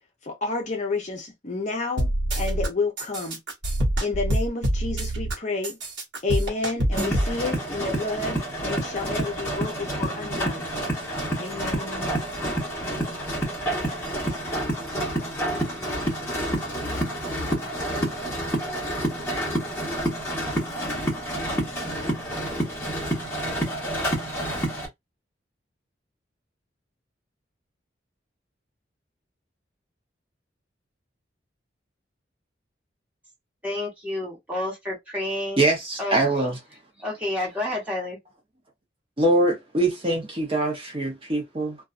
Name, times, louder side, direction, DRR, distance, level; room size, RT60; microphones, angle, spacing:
voice 1, 0.2-3.4 4.0-5.8 6.2-10.7 11.4-12.3, left 3 dB, 40° left, 0.6 m, -30 dB
sound 1, 2.0-2.7 3.0-5.3 5.6-7.3, right 1 dB, 75° right, 1.0 m, -25 dB
sound 2, 6.9-24.9, right 1 dB, 15° left, 1.1 m, -28 dB
voice 2, 33.6-35.6 36.0-36.2 37.0-38.2, left 1 dB, 10° right, 1.3 m, -29 dB
voice 3, 35.6-36.6 39.2-41.8, right 2 dB, 30° right, 0.6 m, -23 dB
2.6 x 2.3 x 2.4 m
head